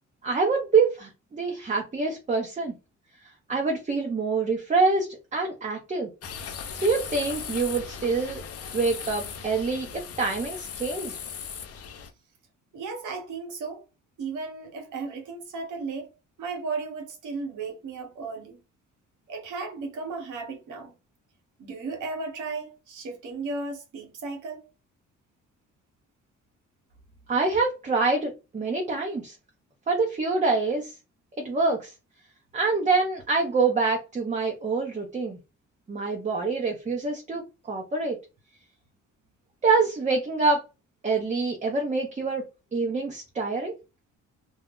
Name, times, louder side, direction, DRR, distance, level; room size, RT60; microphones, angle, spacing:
voice 1, 0.2-2.7 3.5-6.1 6.8-8.4 8.7-11.2 27.3-29.4 29.9-30.9 31.4-31.9 32.5-35.4 35.9-38.2 39.6-40.6 41.0-42.4 42.7-43.7, right 4 dB, 25° right, 0.6 m, -26 dB
sound 1, 6.2-12.1, left 6 dB, 50° left, 0.6 m, -38 dB
voice 2, 12.7-13.8 14.2-16.1 16.4-18.6 19.3-20.9 21.6-24.7, right 4 dB, 85° right, 1.1 m, -35 dB
2.3 x 2.1 x 3.6 m
cardioid pair, 90°, 30 cm